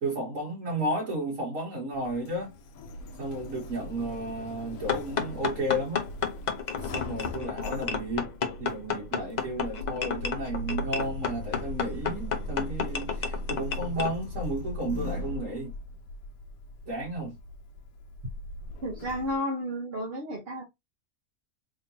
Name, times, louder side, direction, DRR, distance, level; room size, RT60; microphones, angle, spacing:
voice 1, 0.0-2.5 3.2-6.0 6.8-8.3 8.6-15.7 16.9-17.4, right 1 dB, 65° right, 1.8 m, -33 dB
Sliding door, 1.9-19.4, left 1 dB, 85° left, 1.1 m, -39 dB
sound 1, 4.9-14.1, left 6 dB, 50° left, 0.5 m, -31 dB
voice 2, 18.8-20.6, equal, 50° right, 1.0 m, -32 dB
3.6 x 2.8 x 2.7 m
omnidirectional pair, 1.5 m